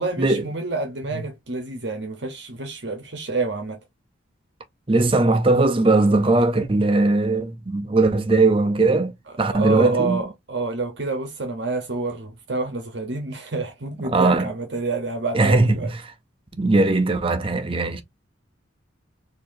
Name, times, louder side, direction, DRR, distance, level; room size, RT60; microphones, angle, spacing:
voice 1, 0.0-3.8 9.5-15.9, right 3 dB, 55° right, 0.9 m, -28 dB
voice 2, 4.9-10.2 14.0-14.5 15.3-15.9 16.5-18.0, right 2 dB, 25° right, 0.5 m, -19 dB
4.1 x 2.7 x 2.6 m
head